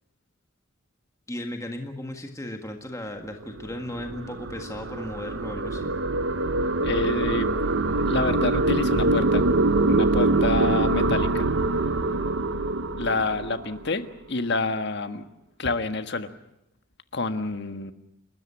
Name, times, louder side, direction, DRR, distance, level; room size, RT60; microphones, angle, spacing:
voice 1, 1.3-5.9, left 1 dB, 15° left, 4 dB, 1.7 m, -36 dB
sound 1, 3.3-13.9, right 2 dB, 65° right, 0.9 m, -24 dB
voice 2, 6.8-7.7 8.0-9.4 9.9-11.5 13.0-15.2 15.6-16.3 17.1-17.9, left 3 dB, 60° left, 9 dB, 1.5 m, -28 dB
29.5 x 13.5 x 9.8 m, 0.86 s
head